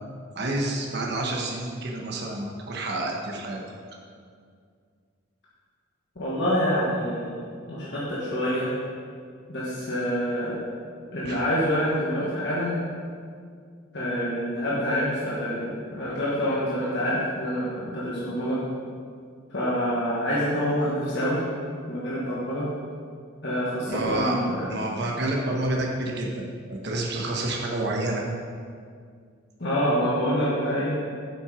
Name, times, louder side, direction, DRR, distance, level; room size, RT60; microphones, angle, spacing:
voice 1, 0.3-3.6 11.2-11.4 23.8-24.4 24.7-28.2, right 2 dB, 50° right, -1 dB, 1.0 m, -29 dB
voice 2, 6.1-7.4 7.7-8.7 9.5-10.5 11.1-12.8 13.9-18.6 19.5-21.4 21.9-22.7 23.4-24.6 29.6-31.0, equal, 55° left, -8 dB, 1.5 m, -26 dB
7.9 x 5.9 x 5.0 m, 2.1 s
head